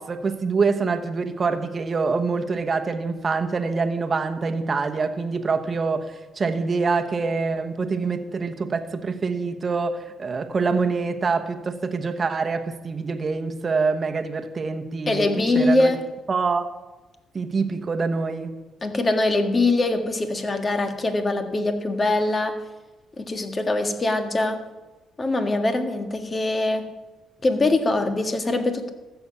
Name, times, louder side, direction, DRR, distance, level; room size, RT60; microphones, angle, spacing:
voice 1, 0.0-15.9 16.3-16.7 17.3-18.5, right 4 dB, 40° right, 1.1 m, -25 dB
voice 2, 15.1-16.0 18.8-22.6 23.2-24.6 25.2-26.9 27.4-28.9, left 2 dB, 30° left, 1.6 m, -23 dB
14.0 x 7.0 x 7.0 m
cardioid pair, 90°, 0 cm